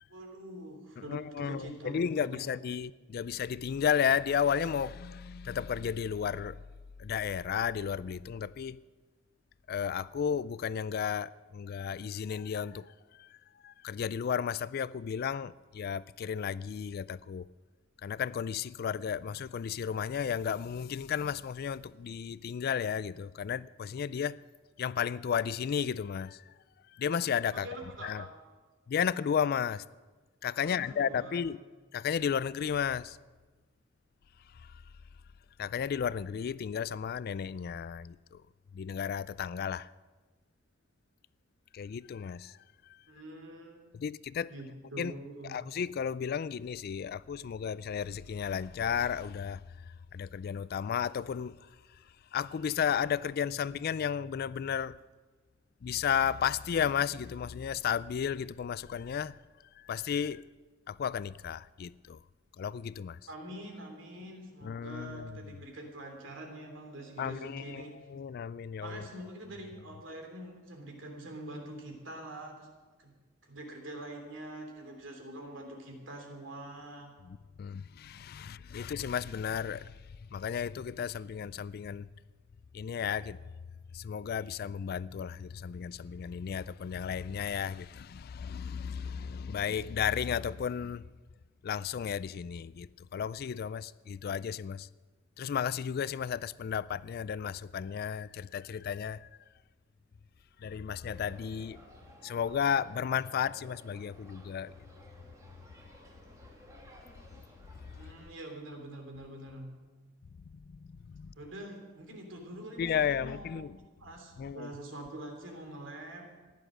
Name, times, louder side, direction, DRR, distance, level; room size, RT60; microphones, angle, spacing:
voice 1, 0.1-2.4 27.5-28.3 30.6-31.4 43.1-43.8 44.5-45.6 63.3-67.9 68.8-72.7 73.0-73.1 73.4-77.1 78.7-78.9 107.9-109.7 111.4-113.7 114.0-116.3, right 1 dB, 70° right, 3.0 m, -45 dB
voice 2, 1.0-6.6 7.0-8.8 9.7-13.4 13.6-17.5 18.0-24.4 24.8-26.5 26.9-27.7 28.0-28.2 28.9-29.8 30.4-31.6 31.9-33.2 34.5-34.8 35.6-38.4 38.7-39.9 41.7-42.6 42.9-43.0 43.9-44.5 45.0-45.1 45.4-49.6 50.1-51.6 52.3-55.0 55.8-59.4 59.8-60.4 60.9-62.2 62.6-63.2 64.6-65.4 67.2-69.1 77.2-80.0 80.3-82.1 82.7-83.4 83.9-91.0 91.6-94.9 95.4-99.3 100.6-101.8 102.2-104.7 107.3-107.4 108.0-108.1 110.5-111.4 112.8-113.8 114.4-114.7, left 7 dB, 50° left, 0.3 m, -33 dB
sound 1, 101.1-108.3, right 1 dB, 15° right, 2.2 m, -56 dB
14.5 x 11.5 x 6.4 m
head